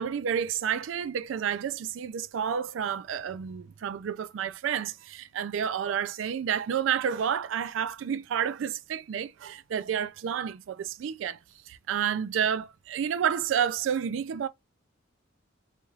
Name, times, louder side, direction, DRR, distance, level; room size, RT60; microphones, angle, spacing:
voice 1, 0.0-11.4 11.7-14.5, right 8 dB, 75° right, 0.3 m, -30 dB
4.1 x 2.3 x 3.1 m
head